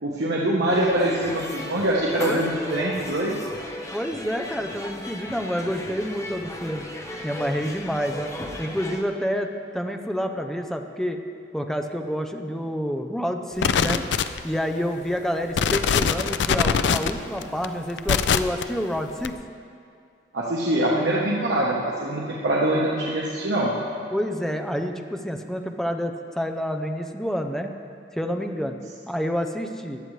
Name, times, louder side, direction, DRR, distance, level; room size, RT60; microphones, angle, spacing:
voice 1, 0.0-3.3 20.3-23.7, right 1 dB, 85° right, -4 dB, 1.1 m, -24 dB
sound 1, 0.7-9.0, left 1 dB, 20° left, 0.9 m, -36 dB
voice 2, 3.9-6.9 7.2-8.3 8.6-11.2 11.5-14.0 14.4-19.3 24.1-27.7 28.1-28.8 29.1-30.0, equal, 5° left, 5 dB, 0.6 m, -28 dB
sound 2, 13.6-14.6 15.1-15.2 15.5-18.6 19.2-19.3, left 6 dB, 85° left, 0.4 m, -22 dB
15.5 x 11.0 x 3.2 m, 2.4 s
head